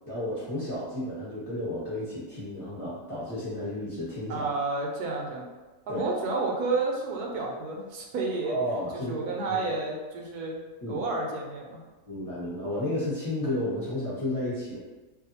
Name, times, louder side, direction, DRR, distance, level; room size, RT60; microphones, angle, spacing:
voice 1, 0.1-4.5 5.9-6.0 8.4-9.6 10.8-11.1 12.1-14.8, left 1 dB, 25° left, -12 dB, 1.0 m, -32 dB
voice 2, 4.3-5.5 5.9-8.6 8.9-10.6 10.9-11.8, right 3 dB, 85° right, -1 dB, 1.1 m, -30 dB
2.7 x 2.3 x 2.7 m, 1.2 s
omnidirectional pair, 1.6 m